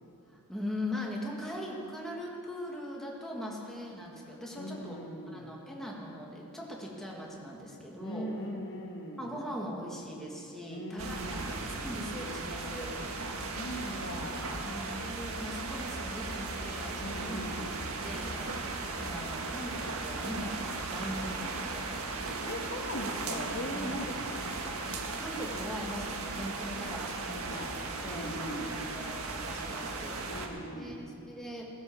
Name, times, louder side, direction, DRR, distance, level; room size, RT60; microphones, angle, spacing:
voice 1, 0.3-5.0 5.3-8.3 9.2-12.9 14.6-18.5 19.0-21.9 23.7-23.9 25.2-27.1 27.5-27.6 28.0-30.5 30.7-31.7, equal, ahead, -3 dB, 2.1 m, -40 dB
voice 2, 4.5-5.6 8.0-9.3 10.7-11.4 13.4-14.7 17.0-17.7 22.4-24.5 27.3-28.8 30.3-31.0, left 1 dB, 55° left, 1 dB, 1.7 m, -40 dB
sound 1, 11.0-30.5, right 3 dB, 80° right, 1.6 m, -37 dB
sound 2, 14.7-18.4 18.7-18.8, left 1 dB, 15° right, 1.6 m, -56 dB
17.0 x 10.5 x 7.3 m, 2.6 s
head